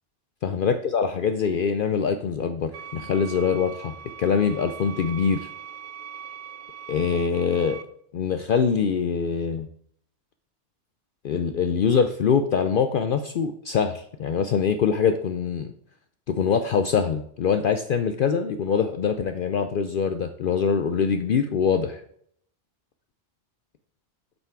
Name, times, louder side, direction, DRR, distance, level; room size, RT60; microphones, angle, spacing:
voice 1, 0.4-5.5 6.9-7.8 8.1-9.7 11.2-15.7 16.3-22.0, left 6 dB, 60° left, 8 dB, 0.6 m, -24 dB
sound 1, 2.7-7.8, right 8 dB, 55° right, 0.7 m, -41 dB
8.1 x 5.7 x 4.6 m, 0.65 s
omnidirectional pair, 1.2 m